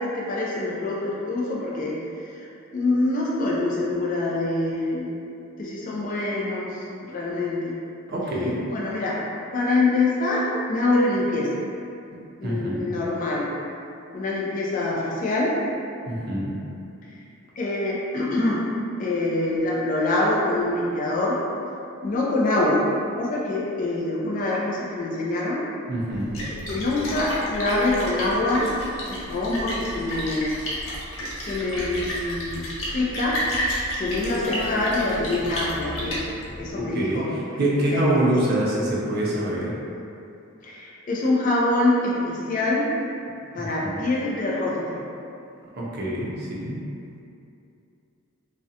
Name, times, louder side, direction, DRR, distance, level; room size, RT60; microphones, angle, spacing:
voice 1, 0.0-2.0 2.3-2.5 2.7-5.2 5.6-7.8 8.7-9.2 9.5-11.6 12.4-13.5 14.1-15.5 17.6-18.6 19.0-21.4 22.0-22.8 23.1-25.6 26.5-28.7 29.1-30.6 31.2-32.6 32.9-33.4 34.0-36.2 36.6-37.3 37.9-38.5 40.6-42.9 43.5-45.0, left 2 dB, 40° left, -5 dB, 0.3 m, -25 dB
voice 2, 8.1-8.6 12.4-12.9 16.1-16.6 25.9-26.4 36.9-39.7 43.6-44.0 45.8-46.8, right 1 dB, 50° right, -6 dB, 0.5 m, -25 dB
Splash splatter, 26.1-36.7, equal, 80° left, 0.6 m, -32 dB
sound 1, 34.1-37.7, left 3 dB, 60° left, 0.9 m, -36 dB
2.4 x 2.1 x 2.7 m, 2.6 s
head